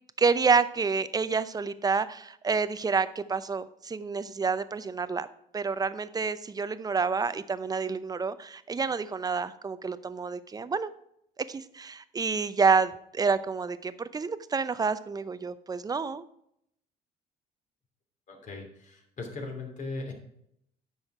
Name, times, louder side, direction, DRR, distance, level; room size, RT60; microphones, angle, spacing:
voice 1, 0.2-5.3 5.5-10.9 11.5-16.2, right 5 dB, 20° right, 14 dB, 0.6 m, -28 dB
voice 2, 18.3-20.1, left 3 dB, 50° left, 2 dB, 2.9 m, -38 dB
9.8 x 6.4 x 4.9 m, 0.72 s
cardioid pair, 110°, 17 cm